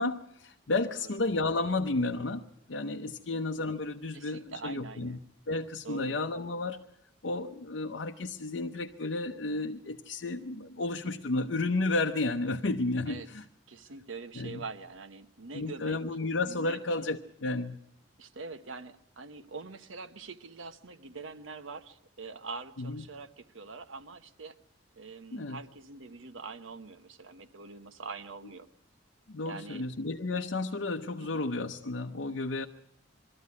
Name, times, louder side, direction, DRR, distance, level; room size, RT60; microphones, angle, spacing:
voice 1, 0.0-5.2 5.5-6.8 7.2-13.4 14.4-14.6 15.5-17.8 22.8-23.0 25.3-25.6 29.3-32.7, left 2 dB, 70° left, 4 dB, 0.7 m, -32 dB
voice 2, 4.1-5.2 5.8-6.2 13.1-13.3 13.7-16.0 16.5-17.1 18.2-24.5 25.0-28.7 29.4-29.9 31.2-31.5, right 4 dB, 80° right, 9 dB, 1.1 m, -44 dB
22.5 x 13.5 x 9.6 m, 0.78 s
head